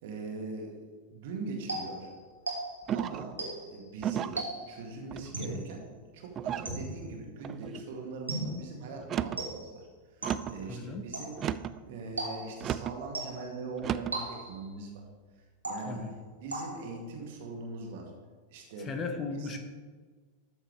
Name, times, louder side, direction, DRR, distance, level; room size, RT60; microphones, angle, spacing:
voice 1, 0.0-0.8 1.1-2.1 2.9-4.4 4.7-5.9 6.1-9.9 10.2-11.3 11.9-15.0 15.6-16.0 16.4-18.1 18.5-18.9 19.3-19.6, right 3 dB, 50° right, 0 dB, 2.2 m, -41 dB
sound 1, 1.7-3.0 3.4-3.8 4.4-4.9 5.3-5.7 6.6-7.1 8.3-8.7 9.4-9.8 10.2-10.6 11.1-11.5 12.2-12.7 13.1-13.6 14.1-14.7 15.6-16.1 16.5-17.0, right 2 dB, 80° right, 2.3 m, -37 dB
sound 2, 2.9-3.3 4.0-4.5 5.1-5.6 6.3-6.8 7.4-7.8 9.0-9.5 10.2-10.6 11.3-11.8 12.6-13.0 13.8-14.2, right 9 dB, 30° right, 0.4 m, -34 dB
voice 2, 10.7-11.1 15.8-16.1 18.8-19.6, left 4 dB, 25° left, 5 dB, 1.1 m, -36 dB
13.5 x 7.1 x 3.5 m, 1.4 s
figure-of-eight pair, 90°, 0 cm